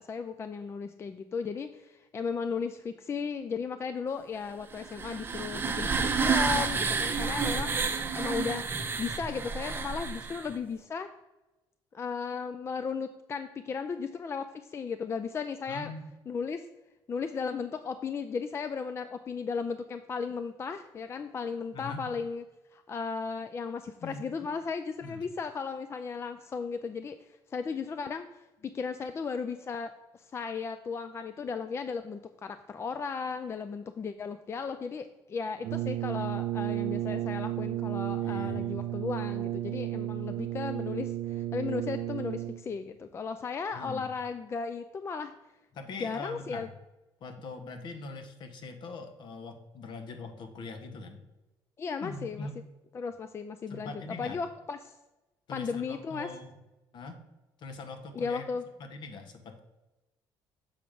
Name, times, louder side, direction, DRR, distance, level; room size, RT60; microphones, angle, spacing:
voice 1, 0.0-8.7 9.0-11.1 11.9-15.9 16.3-16.6 17.1-22.4 22.7-45.3 46.0-46.7 51.8-52.5 52.9-53.9 54.2-54.9 55.5-56.3 58.1-58.6, left 5 dB, 30° left, 9 dB, 0.4 m, -35 dB
sound 1, 4.7-10.5, right 5 dB, 25° right, 0.7 m, -30 dB
voice 2, 15.7-16.1 21.7-22.1 24.0-24.5 25.0-25.2 38.1-38.9 43.7-44.1 45.7-46.7 47.2-51.2 52.0-52.6 53.7-54.4 55.5-56.6 56.9-57.2 57.6-58.5 58.8-59.6, left 3 dB, 60° left, 6 dB, 1.1 m, -42 dB
Brass instrument, 35.6-42.8, right 13 dB, 80° right, 0.4 m, -33 dB
7.0 x 3.6 x 6.0 m, 1.1 s
cardioid pair, 110°, 9 cm